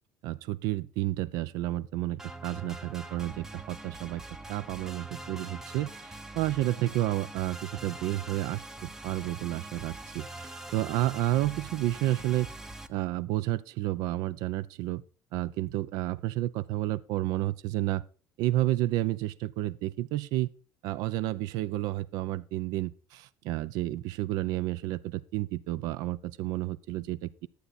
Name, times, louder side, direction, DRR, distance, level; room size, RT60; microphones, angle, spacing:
voice 1, 0.2-4.2 4.5-12.5 12.9-15.0 15.3-18.0 18.4-20.5 20.8-27.5, right 15 dB, 70° right, 0.6 m, -31 dB
sound 1, 2.2-12.9, right 2 dB, 5° right, 0.6 m, -43 dB
11.5 x 8.2 x 4.1 m
cardioid pair, 165°, 7 cm